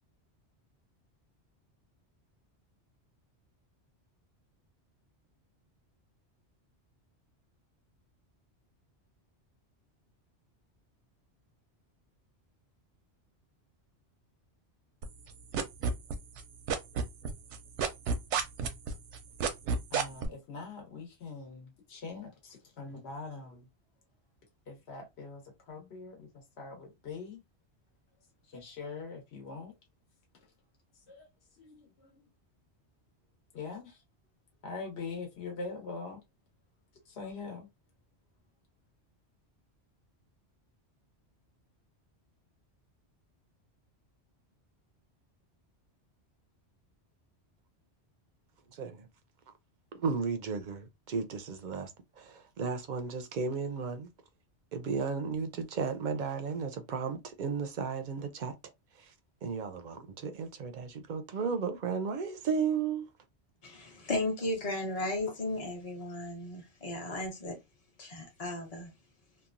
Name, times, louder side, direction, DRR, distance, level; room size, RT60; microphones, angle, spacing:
sound 1, 15.0-16.4 16.7-20.3, right 6 dB, 90° right, 0.9 m, -30 dB
voice 1, 19.9-23.7 24.7-27.4 28.5-29.7 31.1-31.2 31.6-32.2 33.5-34.0 34.6-36.2 37.0-37.7, left 4 dB, 70° left, 1.2 m, -43 dB
voice 2, 48.7-49.1 49.9-51.9 52.2-54.1 54.7-58.5 59.0-59.1 59.4-63.1, right 5 dB, 55° right, 0.5 m, -34 dB
voice 3, 63.6-67.6 68.0-68.9, left 2 dB, 35° left, 0.9 m, -35 dB
2.9 x 2.2 x 2.4 m
omnidirectional pair, 1.1 m